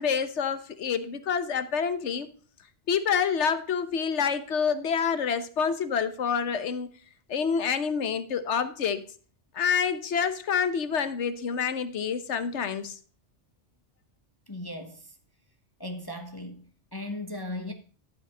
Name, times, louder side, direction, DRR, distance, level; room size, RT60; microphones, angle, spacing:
voice 1, 0.0-2.3 2.9-6.9 7.3-9.0 9.5-13.0, left 6 dB, 85° left, 1.2 m, -27 dB
voice 2, 14.5-15.1 15.8-16.6 16.9-17.7, left 1 dB, 20° left, 1.0 m, -37 dB
12.5 x 5.7 x 4.9 m
omnidirectional pair, 1.2 m